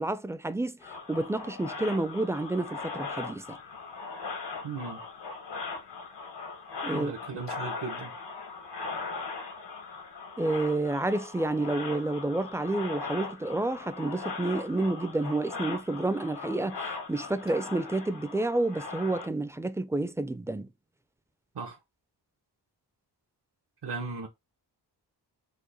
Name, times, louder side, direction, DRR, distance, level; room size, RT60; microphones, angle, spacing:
voice 1, 0.0-3.6 6.8-7.1 10.4-20.7, right 2 dB, 5° right, 0.4 m, -30 dB
sound 1, 0.8-19.3, left 4 dB, 85° left, 1.3 m, -39 dB
voice 2, 4.6-5.0 6.9-8.1 21.5-21.8 23.8-24.3, right 4 dB, 70° right, 1.0 m, -37 dB
4.9 x 2.2 x 3.9 m
wide cardioid pair, 80°, 42 cm